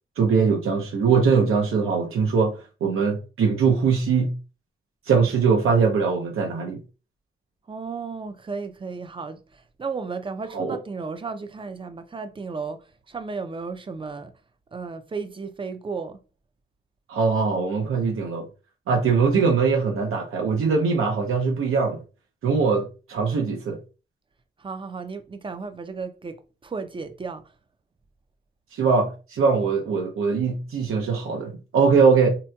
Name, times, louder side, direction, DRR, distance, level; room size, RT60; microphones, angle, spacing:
voice 1, 0.2-2.5 2.8-4.4 5.1-6.8 10.5-10.8 17.1-18.5 18.9-22.0 22.4-23.8 28.7-32.3, right 5 dB, 90° right, 0.6 m, -21 dB
voice 2, 7.7-14.3 14.7-16.2 24.6-26.4 26.6-27.4, right 4 dB, 25° right, 0.4 m, -34 dB
3.6 x 2.8 x 2.2 m
wide cardioid pair, 125°, 21 cm